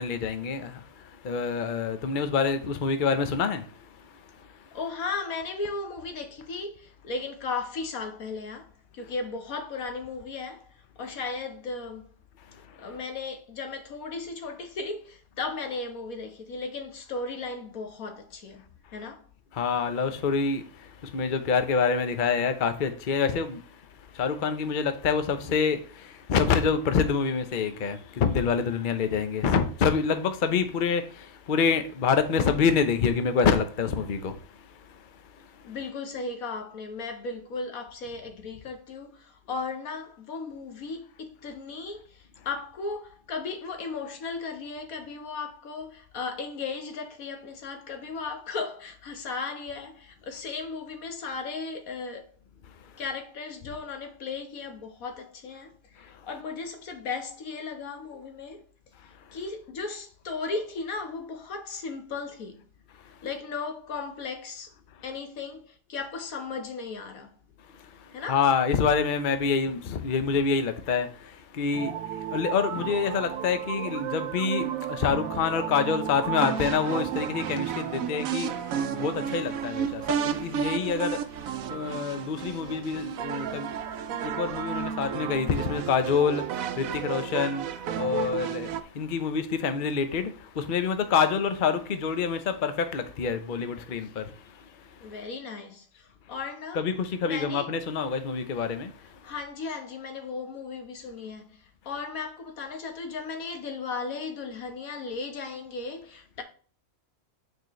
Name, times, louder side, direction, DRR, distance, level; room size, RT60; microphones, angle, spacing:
voice 1, 0.0-4.7 12.5-13.0 19.5-35.8 52.7-52.9 56.1-56.3 59.2-59.4 63.0-63.2 67.7-95.2 96.7-99.3, left 6 dB, 45° left, 0.8 m, -27 dB
voice 2, 4.7-12.0 12.8-18.6 18.9-19.2 35.6-52.3 53.0-58.6 59.3-62.6 63.2-64.7 65.0-67.3 68.1-68.4 95.0-96.8 97.2-97.7 99.2-106.4, left 4 dB, 85° left, 1.6 m, -36 dB
sound 1, 71.7-88.8, right 9 dB, 80° right, 1.0 m, -32 dB
9.2 x 4.4 x 3.1 m
omnidirectional pair, 1.4 m